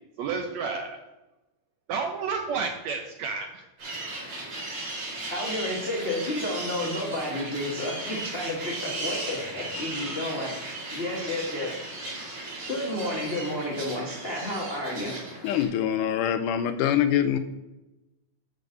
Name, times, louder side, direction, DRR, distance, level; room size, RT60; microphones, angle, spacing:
voice 1, 0.2-1.0 1.9-3.6, right 5 dB, 75° right, 4 dB, 1.6 m, -31 dB
sound 1, 3.8-15.6, right 2 dB, 50° right, 3.7 m, -36 dB
voice 2, 5.3-11.9 12.7-15.2, left 1 dB, 60° left, -4 dB, 0.6 m, -31 dB
voice 3, 15.4-17.4, left 10 dB, 80° left, 10 dB, 2.0 m, -24 dB
7.3 x 5.4 x 6.6 m, 1.0 s
omnidirectional pair, 3.8 m